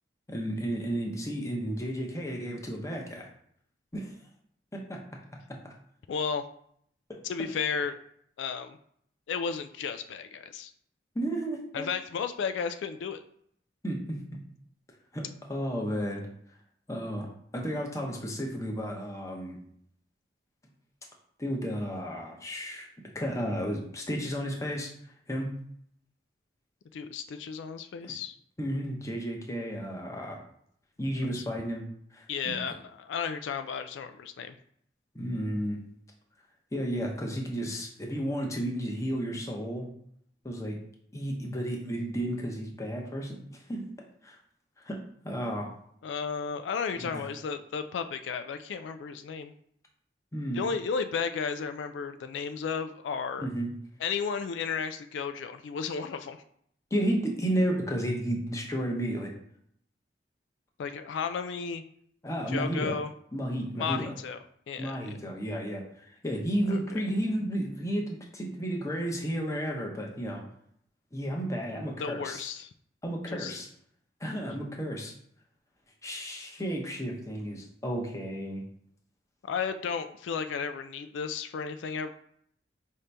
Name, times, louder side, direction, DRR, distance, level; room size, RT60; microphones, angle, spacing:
voice 1, 0.3-3.3 3.9-4.2 4.7-5.0 11.1-11.9 13.8-14.2 15.1-15.2 15.5-16.2 16.9-17.3 17.5-19.6 21.4-22.9 23.1-24.9 25.3-25.5 28.0-28.1 28.6-30.4 31.0-31.9 32.1-32.6 35.1-35.8 36.7-39.9 40.4-40.8 41.1-43.9 44.2-44.4 44.8-45.0 45.2-45.7 47.0-47.3 50.3-50.6 53.4-53.7 56.9-59.3 62.2-62.9 63.3-64.1 64.8-70.4 71.1-72.5 73.0-73.7 74.2-75.1 76.0-78.6, equal, 15° left, 0 dB, 0.7 m, -32 dB
voice 2, 6.1-6.4 7.2-8.0 8.4-8.8 9.3-10.7 11.7-13.2 26.9-28.4 31.4-31.5 32.3-34.6 46.0-49.5 50.5-53.5 54.0-56.4 60.8-61.8 62.5-63.1 63.8-64.4 64.7-65.1 66.7-67.0 72.0-72.7 73.3-73.5 79.4-82.1, left 6 dB, 85° left, 9 dB, 0.3 m, -33 dB
5.0 x 2.8 x 3.3 m, 0.67 s
head